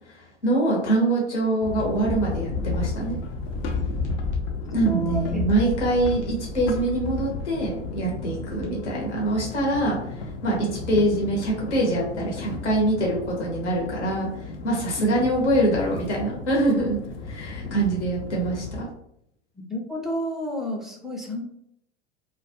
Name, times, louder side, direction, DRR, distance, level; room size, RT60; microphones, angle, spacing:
voice 1, 0.0-3.2 4.7-17.0 17.3-18.9, right 2 dB, 75° left, -3 dB, 1.0 m, -24 dB
sound 1, 1.6-18.8, left 4 dB, 60° left, 0.5 m, -33 dB
voice 2, 4.7-5.4 19.6-21.4, equal, ahead, 1 dB, 0.3 m, -31 dB
2.2 x 2.2 x 2.7 m, 0.74 s
hypercardioid pair, 90°, 35 cm